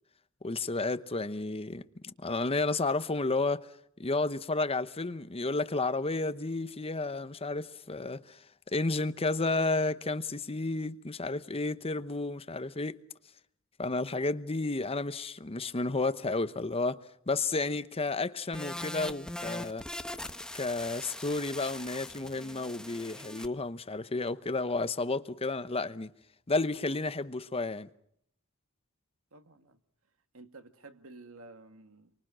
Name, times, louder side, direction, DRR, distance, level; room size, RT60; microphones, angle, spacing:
voice 1, 0.4-3.7 4.0-8.4 8.7-13.0 13.8-17.0 17.3-19.8 20.5-26.1 26.5-27.9, left 3 dB, 30° left, 0.9 m, -32 dB
sound 1, 18.5-23.5, left 1 dB, 5° left, 1.0 m, -41 dB
voice 2, 29.3-29.8 30.3-32.1, right 3 dB, 70° right, 1.9 m, -52 dB
28.5 x 24.5 x 6.3 m
head